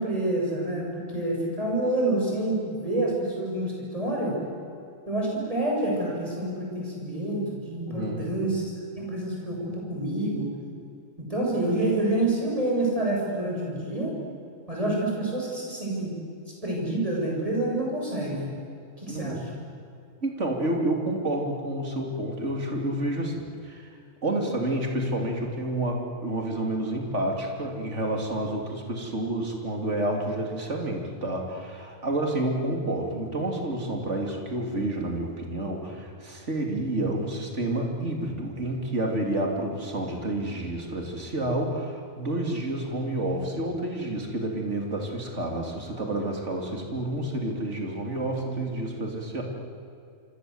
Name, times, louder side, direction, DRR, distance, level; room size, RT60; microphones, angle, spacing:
voice 1, 0.0-4.4 5.1-8.6 9.0-10.5 11.3-14.1 14.7-16.1 16.6-18.5 19.0-19.4, right 1 dB, 25° right, -3 dB, 7.7 m, -27 dB
voice 2, 7.9-8.3 19.1-19.4 20.2-23.9 24.2-49.4, right 1 dB, 55° right, 1 dB, 3.6 m, -29 dB
26.5 x 26.0 x 8.1 m, 2.4 s
omnidirectional pair, 1.4 m